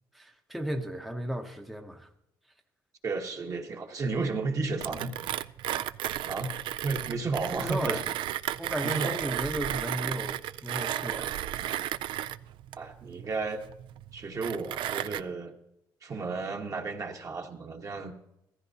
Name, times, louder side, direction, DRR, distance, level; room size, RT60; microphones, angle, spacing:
voice 1, 0.1-2.1 7.5-8.0 8.6-11.4, equal, ahead, 4 dB, 0.7 m, -35 dB
voice 2, 3.0-5.1 6.3-6.5 6.8-8.0 8.8-9.1 12.8-13.6 14.1-15.5 16.0-18.1, right 3 dB, 40° right, 4 dB, 1.2 m, -33 dB
Mechanisms, 4.8-15.2, right 12 dB, 75° right, 0.3 m, -34 dB
15.0 x 14.5 x 2.8 m, 0.83 s
cardioid pair, 110°, 9 cm